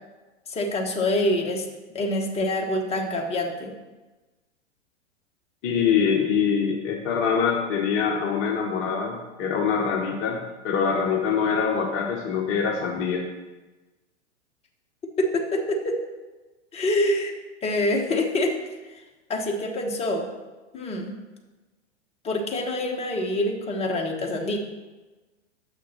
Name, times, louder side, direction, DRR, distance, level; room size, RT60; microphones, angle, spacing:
voice 1, 0.5-1.6 1.9-3.7 15.2-15.9 16.7-17.3 17.6-18.6 19.3-20.3 20.7-21.2 22.2-24.6, left 1 dB, 15° left, 1 dB, 1.2 m, -25 dB
voice 2, 5.6-13.2, left 6 dB, 35° left, 0 dB, 1.0 m, -24 dB
6.4 x 6.4 x 5.8 m, 1.2 s
hypercardioid pair, 105°, 36 cm